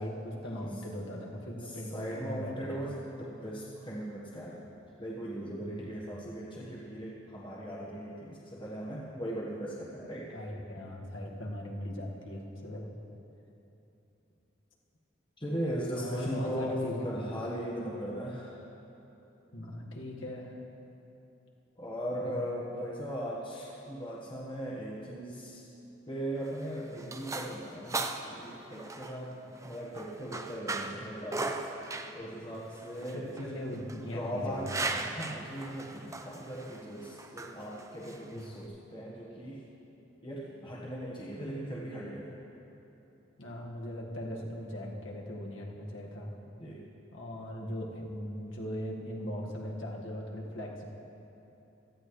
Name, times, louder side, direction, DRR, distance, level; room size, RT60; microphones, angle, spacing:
voice 1, 0.0-2.8 5.6-5.9 10.3-12.9 15.9-17.1 19.5-20.5 22.1-22.5 32.1-32.5 33.1-34.7 38.3-38.4 43.4-46.3 47.1-50.8, equal, 75° left, -2 dB, 1.8 m, -39 dB
voice 2, 1.9-4.7 5.0-10.3 15.4-18.5 21.8-25.7 26.1-31.5 32.1-33.5 34.0-34.7 35.1-39.6 40.2-42.3 46.6-46.8, equal, 25° left, -6 dB, 1.4 m, -38 dB
sound 1, 26.4-38.7, right 3 dB, 15° right, 0.5 m, -39 dB
17.0 x 13.5 x 3.2 m, 3.0 s
head